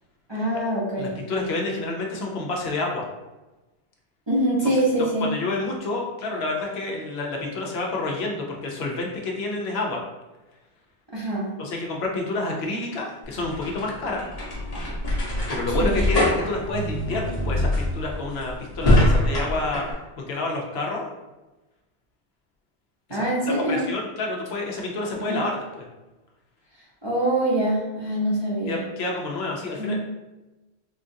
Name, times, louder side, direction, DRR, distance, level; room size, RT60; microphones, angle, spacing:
voice 1, 0.3-1.2 4.3-5.3 11.1-11.5 15.7-16.0 23.1-23.9 25.2-25.5 27.0-28.9 29.8-30.0, right 1 dB, 30° right, -7 dB, 0.7 m, -24 dB
voice 2, 1.0-3.1 4.6-4.8 5.2-10.0 11.6-14.3 15.5-19.8 20.2-21.1 23.1-23.2 23.5-25.9 28.7-30.0, left 2 dB, 75° left, -1 dB, 0.9 m, -29 dB
sound 1, 13.2-19.9, left 1 dB, 40° left, 0.9 m, -24 dB
3.7 x 2.4 x 2.6 m, 1.1 s
omnidirectional pair, 1.1 m